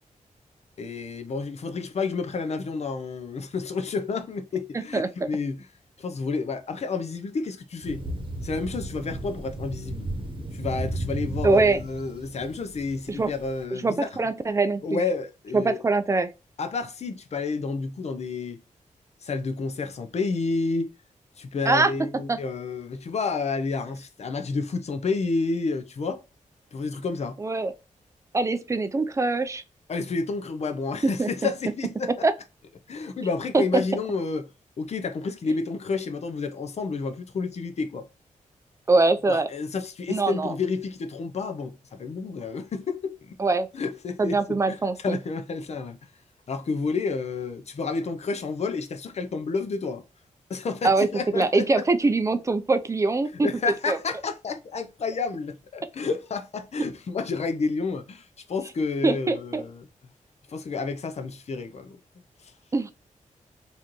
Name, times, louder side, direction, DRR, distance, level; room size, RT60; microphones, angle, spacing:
voice 1, 0.8-5.7 6.0-8.1 8.4-10.1 10.5-14.1 14.8-15.8 16.6-18.6 19.2-20.9 21.4-26.2 26.7-27.4 29.9-32.1 32.9-34.5 34.8-38.1 39.3-43.4 43.7-46.0 46.5-50.0 50.5-51.8 53.4-59.9 60.5-62.0 62.4-62.5, left 4 dB, 55° left, 0.6 m, -30 dB
Thunder, 7.8-13.5, right 1 dB, 40° right, 1.0 m, -34 dB
voice 2, 11.4-11.8 13.1-13.3 13.7-15.0 15.5-16.3 21.7-21.9 22.3-22.4 27.4-27.7 28.3-29.6 31.2-31.3 32.2-32.3 33.5-33.6 38.9-39.5 40.1-40.5 43.4-43.7 44.2-45.2 50.8-51.1 51.3-53.5 53.9-54.0 59.0-59.6 62.7-62.9, right 3 dB, 20° right, 0.4 m, -23 dB
4.1 x 2.6 x 3.0 m
wide cardioid pair, 95°, 14 cm